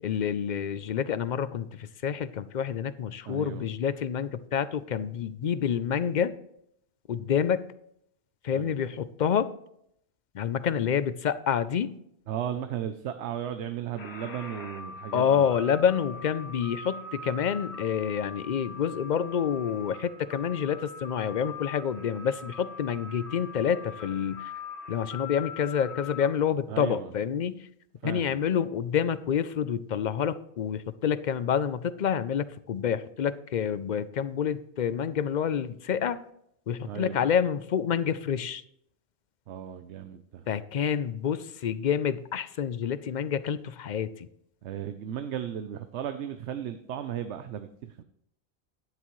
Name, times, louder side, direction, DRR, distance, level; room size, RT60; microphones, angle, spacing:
voice 1, 0.0-6.3 7.1-7.7 8.4-9.5 10.3-11.9 15.1-24.5 24.9-27.7 28.0-36.2 36.7-38.6 40.5-44.3, left 8 dB, 55° left, 15 dB, 0.6 m, -28 dB
voice 2, 3.3-3.7 8.5-8.7 12.3-15.5 26.7-27.1 28.0-28.3 36.8-37.2 39.5-40.4 44.6-48.0, right 9 dB, 85° right, 9 dB, 0.9 m, -35 dB
sound 1, 14.0-26.3, left 4 dB, 70° left, 1.5 m, -42 dB
12.0 x 9.7 x 3.1 m, 0.73 s
omnidirectional pair, 1.1 m